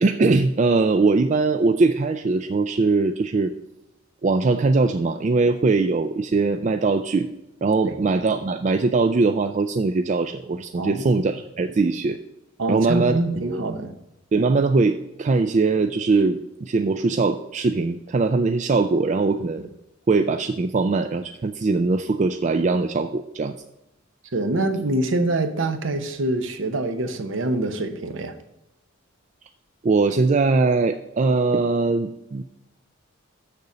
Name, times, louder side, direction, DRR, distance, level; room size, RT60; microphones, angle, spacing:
voice 1, 0.0-3.5 4.2-7.3 7.6-12.2 12.7-13.2 13.5-13.6 14.3-19.7 20.1-23.6 29.8-32.4, right 3 dB, 35° right, 7 dB, 0.3 m, -21 dB
voice 2, 10.8-11.2 12.6-13.9 24.3-28.3, right 2 dB, 65° right, 8 dB, 0.8 m, -25 dB
6.9 x 6.7 x 5.0 m, 0.88 s
head